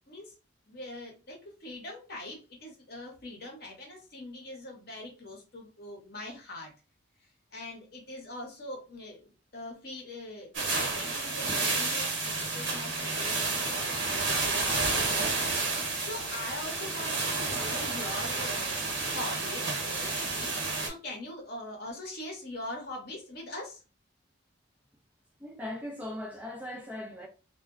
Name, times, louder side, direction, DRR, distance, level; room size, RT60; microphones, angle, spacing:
voice 1, 0.7-6.7 7.5-18.8 19.1-23.8, left 1 dB, 55° left, 0.9 m, -42 dB
sound 1, 10.5-20.9, right 3 dB, 80° right, 0.9 m, -30 dB
voice 2, 25.4-27.3, left 1 dB, 10° right, 0.6 m, -39 dB
2.2 x 2.0 x 3.5 m
head